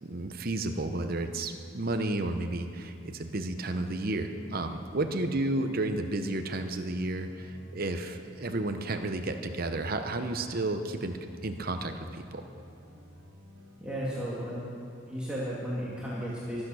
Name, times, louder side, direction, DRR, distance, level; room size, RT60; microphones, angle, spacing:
voice 1, 0.0-12.4, right 2 dB, 45° right, 7 dB, 0.8 m, -32 dB
sound 1, 3.2-14.7, equal, 85° right, 2.5 m, -52 dB
voice 2, 13.8-14.6 15.1-16.6, equal, 5° right, -8 dB, 2.1 m, -34 dB
24.0 x 8.7 x 6.3 m, 2.7 s
head